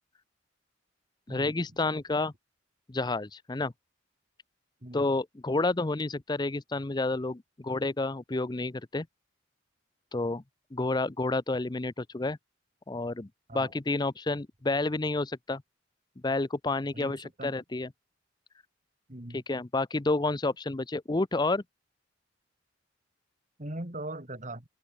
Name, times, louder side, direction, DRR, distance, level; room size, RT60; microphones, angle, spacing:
voice 1, 1.3-2.3 2.9-3.7 4.9-9.1 10.1-10.4 10.7-12.4 12.9-15.6 16.2-17.9 19.3-21.6, left 2 dB, 20° left, 0.6 m, -30 dB
voice 2, 16.9-17.5 19.1-19.4 23.6-24.6, right 1 dB, 40° right, 2.7 m, -40 dB
open air
head